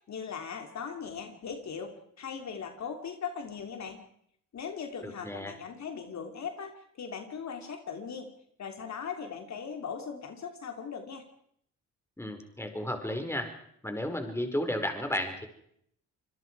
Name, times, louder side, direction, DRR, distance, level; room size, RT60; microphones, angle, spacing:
voice 1, 0.0-4.0 4.5-8.3 8.6-11.2, left 6 dB, 55° left, 5 dB, 3.0 m, -39 dB
voice 2, 5.0-5.6 12.2-13.5 13.8-15.5, left 1 dB, 10° left, 5 dB, 4.8 m, -33 dB
27.0 x 21.5 x 4.8 m, 0.68 s
cardioid pair, 80°, 32 cm